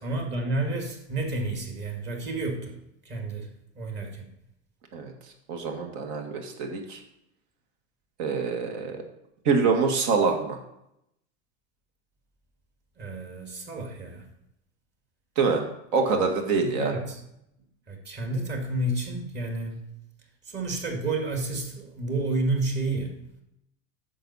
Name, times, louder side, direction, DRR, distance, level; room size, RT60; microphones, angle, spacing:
voice 1, 0.0-2.7 3.1-3.5 3.8-4.3 13.0-14.2 16.6-17.2 17.9-19.8 20.5-23.2, right 2 dB, 25° right, 2 dB, 2.1 m, -30 dB
voice 2, 5.5-7.0 8.2-9.0 9.5-10.6 15.4-15.6 15.9-16.9, right 4 dB, 55° right, 4 dB, 1.9 m, -25 dB
9.8 x 7.0 x 4.2 m, 0.79 s
supercardioid pair, 145°, 40 cm